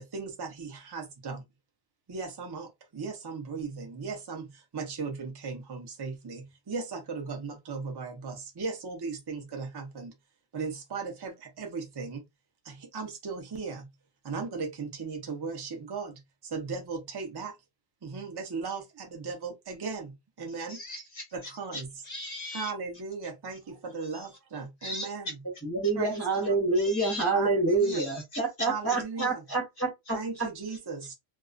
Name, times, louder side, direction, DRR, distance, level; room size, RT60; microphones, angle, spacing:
voice 1, 0.0-1.4 2.1-10.1 10.5-12.2 12.6-13.9 14.2-17.6 18.0-20.8 21.3-21.9 22.5-25.4 25.9-26.5 27.3-28.1 28.6-29.4 30.1-31.1, right 4 dB, 40° right, 0.3 m, -37 dB
voice 2, 20.7-21.3 21.7-22.7 24.1-24.3 24.8-25.1 26.7-27.2 27.8-28.7 30.7-30.8, left 2 dB, 60° left, 0.4 m, -39 dB
voice 3, 25.6-30.2, right 3 dB, 15° left, 0.6 m, -27 dB
2.3 x 2.3 x 2.4 m
omnidirectional pair, 1.4 m